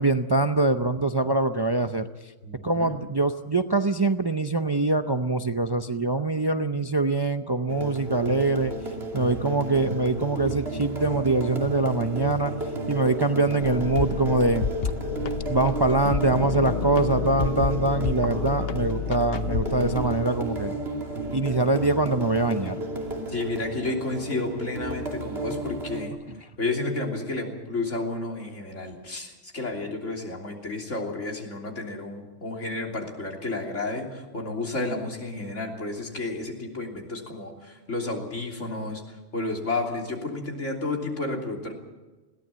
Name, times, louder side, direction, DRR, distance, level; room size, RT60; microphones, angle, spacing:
voice 1, 0.0-2.3 2.6-8.7 9.1-12.5 12.9-14.7 15.5-20.7 21.3-22.8, right 2 dB, 30° right, 8 dB, 0.5 m, -24 dB
voice 2, 2.4-3.0 23.3-26.1 26.6-41.7, left 2 dB, 80° left, 1 dB, 3.6 m, -31 dB
sound 1, 7.7-26.1, right 1 dB, 55° right, 2.9 m, -33 dB
sound 2, 13.6-20.1, left 6 dB, 55° left, 1.0 m, -30 dB
21.0 x 17.0 x 7.5 m, 1.2 s
omnidirectional pair, 1.3 m